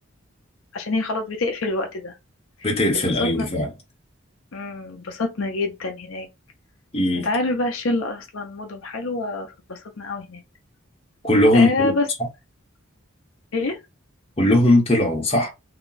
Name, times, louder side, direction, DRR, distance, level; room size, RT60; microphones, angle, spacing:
voice 1, 0.7-2.2 2.6-3.5 4.5-6.3 7.2-10.4 11.5-12.1 13.5-13.8, left 2 dB, 75° left, 0.7 m, -27 dB
voice 2, 2.6-3.7 6.9-7.3 11.2-11.9 14.4-15.5, left 1 dB, 25° left, 1.0 m, -19 dB
2.8 x 2.3 x 3.9 m
head